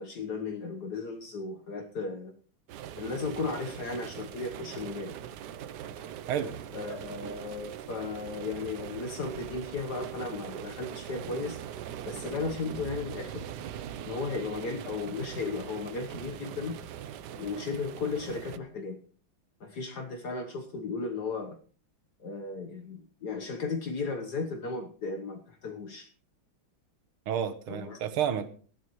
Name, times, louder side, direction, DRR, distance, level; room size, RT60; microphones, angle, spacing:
voice 1, 0.0-2.3 2.9-5.1 6.7-11.6 12.1-13.5 14.0-16.8 17.4-19.0 19.6-21.6 22.2-26.1 27.7-28.0, left 4 dB, 55° left, 4 dB, 1.6 m, -35 dB
sound 1, 2.7-18.6, right 9 dB, 65° right, 1.1 m, -41 dB
voice 2, 27.3-28.5, right 9 dB, 85° right, 10 dB, 1.9 m, -30 dB
18.0 x 12.0 x 3.1 m, 0.41 s
omnidirectional pair, 2.3 m